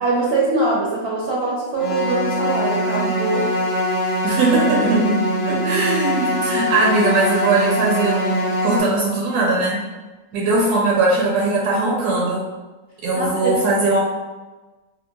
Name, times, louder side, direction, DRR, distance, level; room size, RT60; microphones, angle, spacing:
voice 1, 0.0-3.5 13.1-13.6, right 3 dB, 60° right, -6 dB, 0.7 m, -22 dB
sound 1, 1.8-8.8, equal, 65° left, 0.7 m, -22 dB
voice 2, 4.2-9.8 10.3-12.5 13.0-14.0, right 2 dB, 80° right, -3 dB, 1.1 m, -20 dB
3.8 x 2.1 x 2.2 m, 1.2 s
omnidirectional pair, 1.7 m